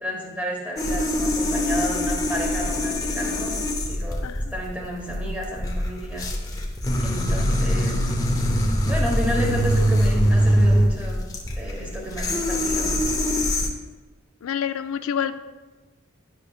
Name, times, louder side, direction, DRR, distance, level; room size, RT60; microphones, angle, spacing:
voice 1, 0.0-3.6 3.9-4.2 4.5-6.3 7.0-8.0 8.9-11.2 11.6-12.9, equal, 5° right, -2 dB, 1.0 m, -31 dB
sound 1, 0.8-13.7, equal, 15° left, 0.6 m, -23 dB
voice 2, 14.4-15.4, left 8 dB, 80° left, 12 dB, 0.3 m, -27 dB
10.5 x 5.1 x 2.3 m, 1.2 s
head